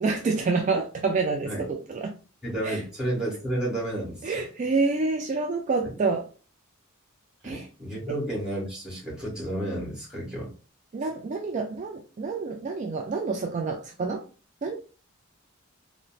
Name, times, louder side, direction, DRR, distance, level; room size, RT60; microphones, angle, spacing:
voice 1, 0.0-2.1 2.6-2.8 4.2-6.2 7.4-7.7 10.9-14.2 14.6-14.7, right 4 dB, 35° right, 3 dB, 0.3 m, -28 dB
voice 2, 2.4-4.4 7.4-10.5, right 1 dB, 5° right, -5 dB, 1.5 m, -31 dB
3.9 x 2.1 x 2.4 m, 0.36 s
head